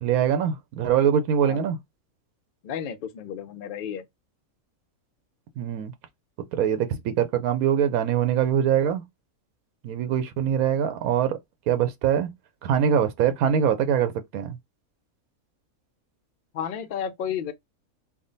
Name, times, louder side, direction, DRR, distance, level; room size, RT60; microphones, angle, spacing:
voice 1, 0.0-1.8 5.6-5.9 6.5-9.0 9.8-11.4 11.7-12.3 12.6-14.6, right 9 dB, 85° right, 1.1 m, -23 dB
voice 2, 2.6-4.0 16.5-17.5, left 8 dB, 70° left, 0.5 m, -32 dB
3.6 x 2.2 x 3.8 m
omnidirectional pair, 1.5 m